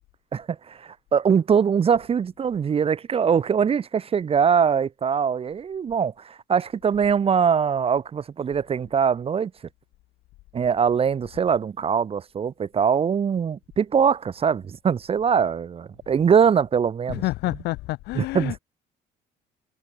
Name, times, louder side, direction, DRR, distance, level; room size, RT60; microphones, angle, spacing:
voice 1, 0.3-9.5 10.5-17.2 18.1-18.5, right 7 dB, 35° right, 0.9 m, -22 dB
voice 2, 17.1-18.6, left 19 dB, 80° left, 0.6 m, -28 dB
cardioid pair, 110°, 17 cm